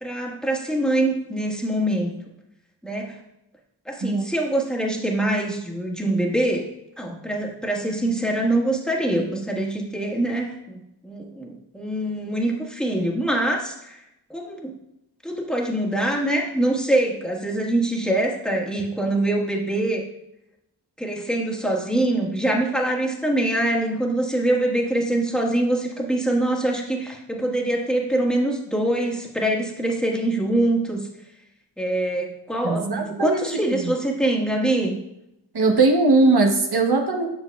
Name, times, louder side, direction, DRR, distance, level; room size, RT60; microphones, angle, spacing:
voice 1, 0.0-2.1 2.8-3.2 3.9-6.7 7.0-14.0 14.3-14.7 15.2-20.0 21.0-31.0 31.8-34.9, right 1 dB, ahead, -1 dB, 1.4 m, -24 dB
voice 2, 32.6-33.9 35.5-37.3, right 3 dB, 70° right, 2 dB, 0.9 m, -20 dB
7.8 x 6.1 x 2.2 m, 0.84 s
cardioid pair, 40°, 40 cm